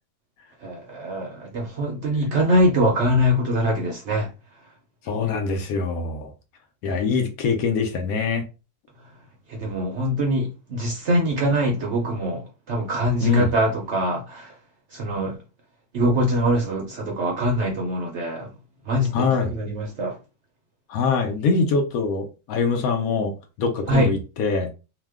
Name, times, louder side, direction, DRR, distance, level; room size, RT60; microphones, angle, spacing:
voice 1, 0.6-4.3 9.5-14.6 14.9-15.4 15.9-18.5 18.9-20.2 23.9-24.1, equal, 60° right, 0.7 m, -23 dB
voice 2, 5.1-6.3 6.8-8.4 13.2-13.5 19.1-19.6 20.9-24.7, left 5 dB, 70° left, 1.0 m, -23 dB
2.9 x 2.1 x 3.4 m
omnidirectional pair, 1.7 m